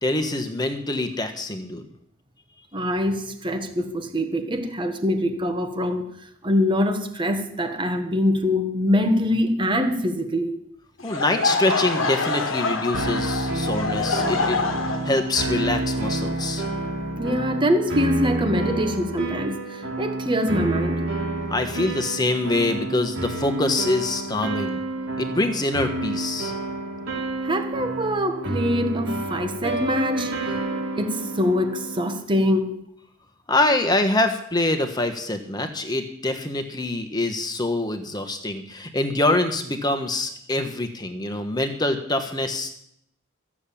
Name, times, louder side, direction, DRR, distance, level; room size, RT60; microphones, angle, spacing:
voice 1, 0.0-1.8 11.0-14.6 15.0-16.6 21.5-24.8 25.2-26.5 33.5-42.7, left 2 dB, 20° left, 1.4 m, -25 dB
voice 2, 2.7-6.1 6.4-10.5 17.2-21.0 27.4-30.6 31.0-32.8, left 1 dB, 25° right, 1.3 m, -24 dB
Laughter / Crowd, 11.0-16.9, left 3 dB, 70° left, 1.5 m, -26 dB
sound 1, 12.9-32.2, right 2 dB, 65° right, 2.7 m, -29 dB
14.0 x 7.4 x 8.6 m
head